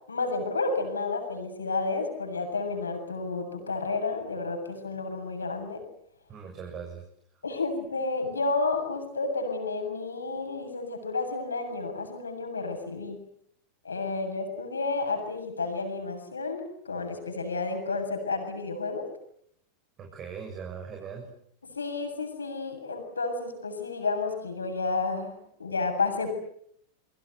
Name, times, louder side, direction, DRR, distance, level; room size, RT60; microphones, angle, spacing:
voice 1, 0.1-5.8 7.4-13.2 13.8-19.1 21.8-26.3, left 3 dB, 85° left, 6 dB, 7.4 m, -31 dB
voice 2, 6.3-7.0 20.0-21.3, right 6 dB, 35° right, 2 dB, 7.3 m, -40 dB
29.0 x 23.5 x 8.1 m, 0.69 s
figure-of-eight pair, 90°, 0 cm